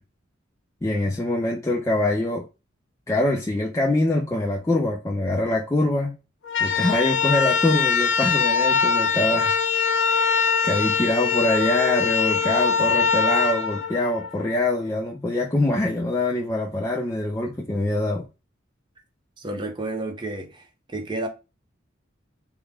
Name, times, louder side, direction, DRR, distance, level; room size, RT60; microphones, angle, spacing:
voice 1, 0.8-2.5 3.1-6.2 6.6-9.6 10.0-18.3, left 1 dB, 15° left, 0.3 m, -24 dB
sound 1, 6.4-14.6, left 6 dB, 65° left, 0.5 m, -22 dB
voice 2, 19.4-20.6 20.9-21.3, right 2 dB, 25° right, 0.6 m, -30 dB
3.6 x 2.1 x 3.3 m
head